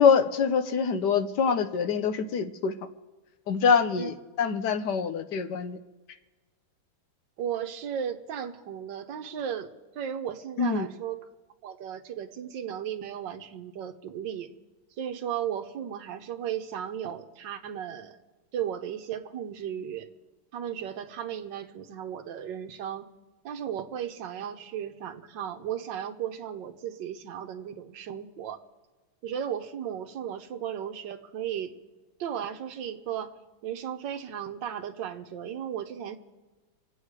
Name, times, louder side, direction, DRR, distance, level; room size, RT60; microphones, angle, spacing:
voice 1, 0.0-2.7 3.5-5.8 10.6-10.9, left 6 dB, 65° left, 9 dB, 1.3 m, -24 dB
voice 2, 7.4-9.7 9.9-11.2 11.6-14.5 15.0-18.2 18.5-20.1 20.5-23.1 23.4-28.6 29.2-31.8 32.2-33.3 33.6-36.2, right 9 dB, 65° right, 7 dB, 1.6 m, -35 dB
25.5 x 8.6 x 4.8 m, 1.2 s
omnidirectional pair, 2.2 m